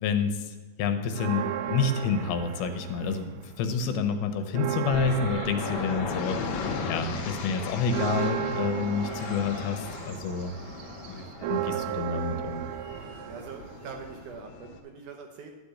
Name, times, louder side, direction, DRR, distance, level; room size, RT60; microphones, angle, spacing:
voice 1, 0.0-10.5 11.1-12.6, left 5 dB, 80° left, 8 dB, 2.8 m, -29 dB
sound 1, 1.1-3.5 3.9-14.3, right 12 dB, 85° right, 1.9 m, -35 dB
sound 2, 4.9-14.8, left 4 dB, 65° left, 1.9 m, -37 dB
voice 2, 12.9-15.5, right 5 dB, 70° right, 3 dB, 2.0 m, -43 dB
12.0 x 5.1 x 8.3 m, 1.4 s
omnidirectional pair, 4.4 m